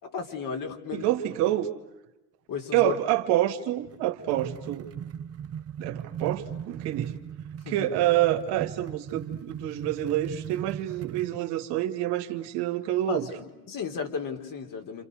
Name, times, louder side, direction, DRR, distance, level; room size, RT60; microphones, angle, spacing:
voice 1, 0.0-1.1 1.4-1.5 2.5-3.0 7.7-7.9 13.1-15.0, left 6 dB, 45° left, 3 dB, 4.0 m, -34 dB
voice 2, 0.9-1.7 2.7-4.9 5.8-7.2 7.7-13.3, right 14 dB, 65° right, 6 dB, 2.4 m, -27 dB
sound 1, 3.8-11.4, right 8 dB, 35° right, 1.0 m, -38 dB
29.0 x 27.0 x 6.7 m, 0.96 s
supercardioid pair, 100°, 44 cm